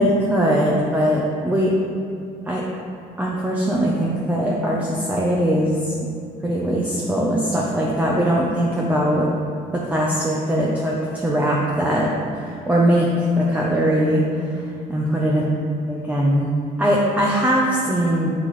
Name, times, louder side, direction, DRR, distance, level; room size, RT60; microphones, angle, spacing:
voice 1, 0.0-1.7 2.4-2.6 3.2-5.9 6.4-9.3 9.7-15.4 15.9-16.5 16.8-18.3, equal, 10° right, -3 dB, 0.8 m, -21 dB
7.4 x 6.1 x 3.2 m, 2.4 s
cardioid pair, 110°, 17 cm